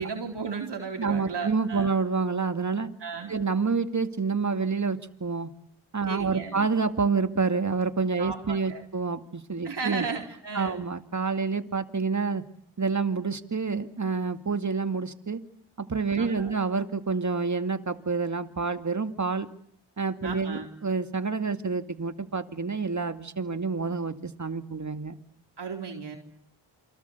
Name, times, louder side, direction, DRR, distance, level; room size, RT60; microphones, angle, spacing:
voice 1, 0.0-1.9 3.0-3.4 6.1-6.7 8.2-8.8 9.6-10.8 16.1-16.5 20.2-20.7 25.6-26.2, right 5 dB, 60° right, 2 dB, 4.2 m, -35 dB
voice 2, 1.0-2.9 3.3-5.5 5.9-10.1 10.5-12.4 12.8-15.4 15.8-19.5 20.0-25.2, right 4 dB, 35° right, 8 dB, 2.3 m, -28 dB
28.0 x 25.0 x 8.2 m, 0.65 s
cardioid pair, 65°, 47 cm